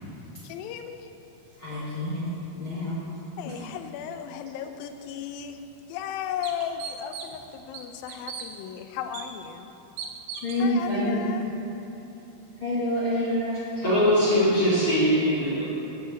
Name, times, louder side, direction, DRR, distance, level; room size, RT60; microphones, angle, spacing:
voice 1, 0.4-1.1 3.4-5.6 5.9-9.7 10.6-11.4, left 9 dB, 85° left, 7 dB, 2.1 m, -35 dB
voice 2, 1.6-3.0 10.4-11.2 12.6-13.6, left 1 dB, 65° left, -9 dB, 1.2 m, -27 dB
sound 1, 5.4-5.5 6.0-6.1 6.4-7.4 7.7-8.5 9.1-9.3 10.0-10.6, right 7 dB, 85° right, 2.8 m, -37 dB
voice 3, 13.8-15.6, equal, 35° left, -9 dB, 1.6 m, -21 dB
7.9 x 6.7 x 7.7 m, 3.0 s
omnidirectional pair, 4.7 m